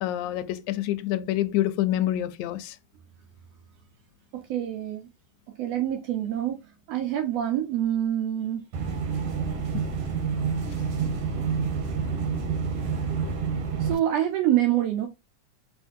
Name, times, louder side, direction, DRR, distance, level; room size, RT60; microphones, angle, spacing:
voice 1, 0.0-2.8 9.7-9.8, left 13 dB, 85° left, 2.0 m, -27 dB
voice 2, 4.3-5.1 5.6-6.6 6.9-8.6 13.8-15.1, right 12 dB, 75° right, 1.5 m, -26 dB
sound 1, 8.7-13.9, right 6 dB, 60° right, 1.8 m, -28 dB
4.8 x 4.4 x 2.5 m
omnidirectional pair, 3.5 m